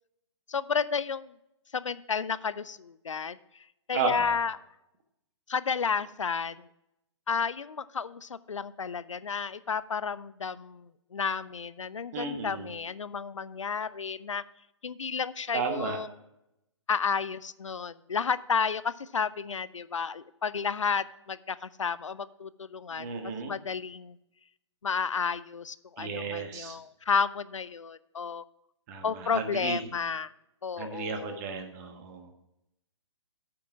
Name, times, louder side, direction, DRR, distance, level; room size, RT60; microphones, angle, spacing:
voice 1, 0.5-1.3 1.7-3.4 3.9-4.6 5.5-6.7 7.3-14.4 14.8-16.1 16.9-24.2 24.8-28.4 29.0-30.3 30.6-31.4, left 6 dB, 80° left, 17 dB, 0.5 m, -32 dB
voice 2, 3.9-4.4 12.1-12.7 15.5-16.0 23.0-23.5 26.0-26.8 28.9-29.8 30.8-32.3, right 5 dB, 35° right, 5 dB, 1.4 m, -33 dB
8.5 x 5.9 x 6.0 m, 0.85 s
figure-of-eight pair, 130°, 16 cm